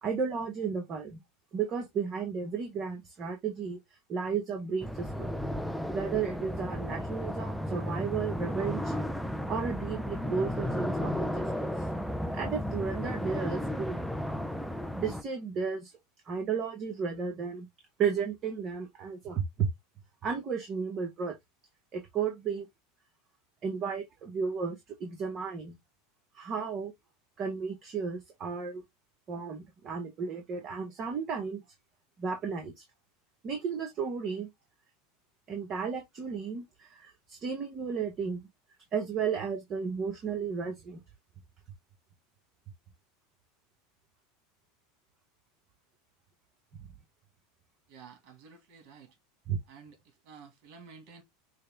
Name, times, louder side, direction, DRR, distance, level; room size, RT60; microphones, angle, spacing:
voice 1, 0.0-1.2 1.5-3.8 4.1-5.3 5.9-8.9 9.5-11.9 12.3-14.0 14.9-15.9 16.2-17.7 18.0-19.7 20.2-21.4 21.9-22.7 23.6-25.8 26.3-26.9 27.4-28.8 29.3-31.6 32.2-32.8 33.4-34.5 35.5-38.4 38.9-41.0 46.8-46.9 49.5-49.6, right 6 dB, 40° right, 1.2 m, -33 dB
sound 1, 4.8-15.2, left 1 dB, ahead, 0.5 m, -34 dB
voice 2, 47.9-49.2 49.7-51.2, right 5 dB, 60° right, 2.0 m, -52 dB
6.5 x 2.3 x 3.4 m
supercardioid pair, 120°, 0 cm